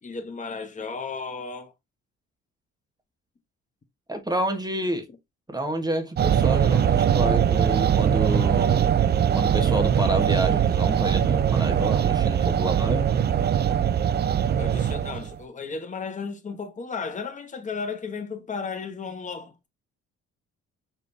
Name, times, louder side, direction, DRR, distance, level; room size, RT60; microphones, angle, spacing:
voice 1, 0.0-1.7 14.6-19.7, left 5 dB, 25° left, 1.0 m, -34 dB
voice 2, 4.1-5.1 5.5-8.8 9.3-13.1, right 1 dB, 15° right, 1.2 m, -29 dB
sound 1, 6.2-15.4, right 9 dB, 35° right, 0.4 m, -21 dB
5.1 x 3.3 x 2.6 m
cardioid pair, 90°, 30 cm